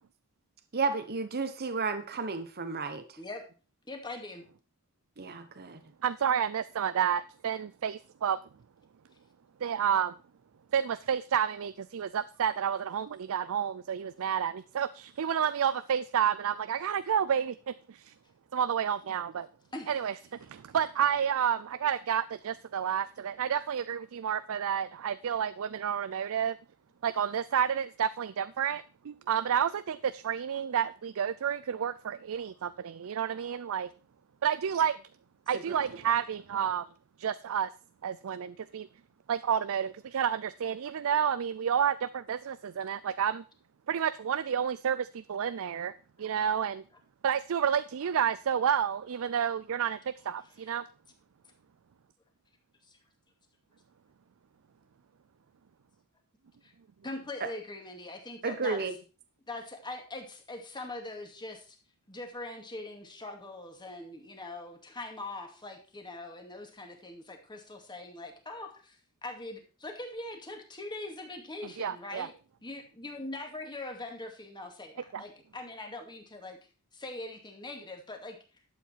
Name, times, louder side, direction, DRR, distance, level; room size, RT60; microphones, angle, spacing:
voice 1, 0.7-3.0 5.2-5.8 35.5-35.6 58.4-58.9, right 4 dB, 45° right, 1.1 m, -32 dB
voice 2, 3.9-4.4 19.7-20.0 50.6-50.7 52.9-53.0 56.6-56.7 57.0-58.8 59.5-61.8 62.1-69.0 69.2-72.3 72.6-76.6 76.9-78.4, left 2 dB, 20° left, 2.3 m, -42 dB
voice 3, 6.0-8.4 9.6-10.1 10.7-18.1 18.5-19.5 19.9-20.1 20.4-26.6 27.0-33.9 34.4-35.0 35.5-36.8 37.2-37.7 38.0-38.9 39.3-43.4 43.9-45.9 46.2-46.8 47.2-50.8 71.8-72.3 75.1-75.2, right 8 dB, 65° right, 0.4 m, -30 dB
11.5 x 8.2 x 4.6 m
head